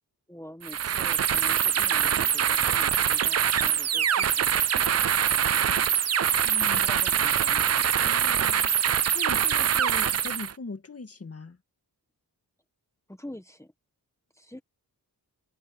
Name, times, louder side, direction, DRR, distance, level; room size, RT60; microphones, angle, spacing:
voice 1, 0.3-5.1 6.6-7.9 13.1-13.7 14.3-14.6, left 1 dB, 5° left, 1.5 m, -46 dB
sound 1, 0.6-10.5, right 8 dB, 40° right, 0.4 m, -24 dB
voice 2, 6.4-6.8 8.1-11.6, left 4 dB, 40° left, 2.0 m, -40 dB
open air
wide cardioid pair, 150°, 38 cm